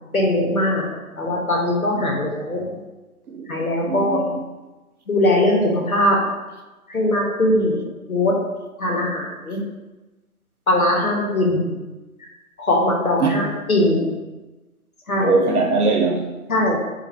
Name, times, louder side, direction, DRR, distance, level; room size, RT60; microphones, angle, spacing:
voice 1, 0.1-0.9 1.2-2.7 3.5-4.2 5.1-6.2 6.9-8.4 8.8-9.6 10.7-11.7 12.6-14.1 15.1-15.3 16.5-16.8, left 1 dB, 70° left, -1 dB, 1.1 m, -20 dB
voice 2, 1.9-2.3 3.3-3.5 3.8-4.5 8.9-9.1 13.2-13.5 15.2-16.4, right 3 dB, 80° right, 4 dB, 0.7 m, -22 dB
2.6 x 2.6 x 4.2 m, 1.1 s
figure-of-eight pair, 175°, 45 cm